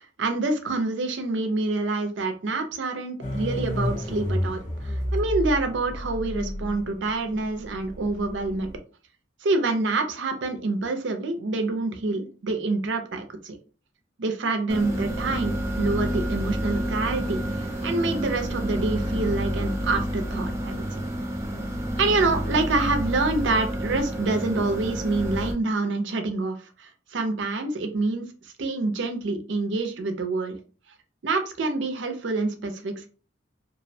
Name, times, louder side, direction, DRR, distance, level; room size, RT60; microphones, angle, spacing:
voice 1, 0.0-8.7 9.4-13.6 14.2-20.8 22.0-28.3 28.6-30.6 31.2-33.1, right 3 dB, 75° right, 6 dB, 0.5 m, -27 dB
sound 1, 3.2-8.8, equal, 45° left, 0.8 m, -31 dB
sound 2, 14.7-25.5, equal, 15° right, 0.4 m, -29 dB
2.4 x 2.0 x 2.6 m, 0.37 s
head